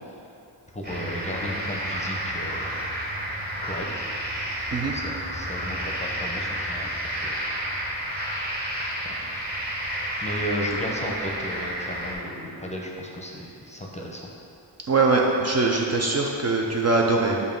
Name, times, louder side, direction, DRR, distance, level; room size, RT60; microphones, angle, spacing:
voice 1, 0.7-2.7 3.6-4.1 4.3-4.5 4.9-6.9 7.1-7.3 9.0-9.5 10.2-14.3, equal, 15° left, -2 dB, 0.7 m, -34 dB
sound 1, 0.8-12.1, right 1 dB, 20° right, 1.2 m, -31 dB
voice 2, 14.9-17.4, right 3 dB, 40° right, -1 dB, 0.5 m, -22 dB
7.1 x 2.7 x 5.3 m, 2.7 s
wide cardioid pair, 105°, 42 cm